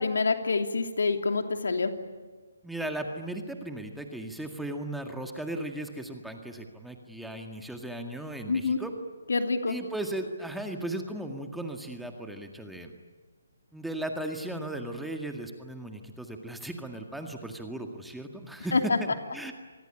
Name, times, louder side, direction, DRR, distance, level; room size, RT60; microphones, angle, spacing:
voice 1, 0.0-1.9 8.5-8.8 9.3-9.8 18.7-19.0, left 4 dB, 75° left, 5 dB, 2.9 m, -26 dB
voice 2, 2.6-8.9 9.7-12.9 13.7-18.7 19.0-19.5, right 1 dB, ahead, 3 dB, 2.0 m, -37 dB
27.0 x 20.0 x 10.0 m, 1.4 s
figure-of-eight pair, 145°, 0 cm